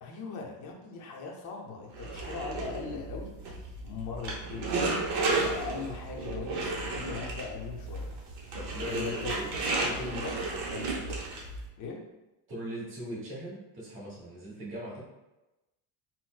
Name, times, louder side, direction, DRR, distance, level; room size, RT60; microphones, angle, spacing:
voice 1, 0.0-3.3 3.8-8.1 8.4-8.6 8.9-10.4 10.7-11.0 11.8-12.0, left 5 dB, 40° left, 0 dB, 0.5 m, -40 dB
sound 1, 1.9-11.7, right 3 dB, 60° right, 0.8 m, -33 dB
voice 2, 8.5-9.4 9.8-10.3 12.5-15.0, equal, 25° right, -7 dB, 1.0 m, -39 dB
4.0 x 2.0 x 2.3 m, 1.0 s
cardioid pair, 135°, 47 cm